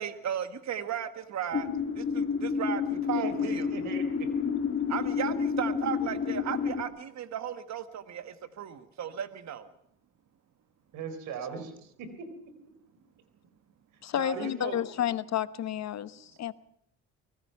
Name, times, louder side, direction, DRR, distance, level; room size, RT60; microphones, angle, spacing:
voice 1, 0.0-1.7 2.0-3.7 4.9-9.7 11.4-11.5, right 9 dB, 60° right, 10 dB, 1.7 m, -35 dB
sound 1, 1.5-6.8, left 6 dB, 45° left, 2.8 m, -30 dB
voice 2, 3.1-4.3 10.9-11.7 12.0-12.3 14.1-14.8, right 5 dB, 90° right, 10 dB, 4.1 m, -38 dB
voice 3, 14.0-16.5, left 10 dB, 60° left, 15 dB, 1.1 m, -31 dB
24.5 x 18.5 x 5.8 m, 0.73 s
cardioid pair, 90°, 30 cm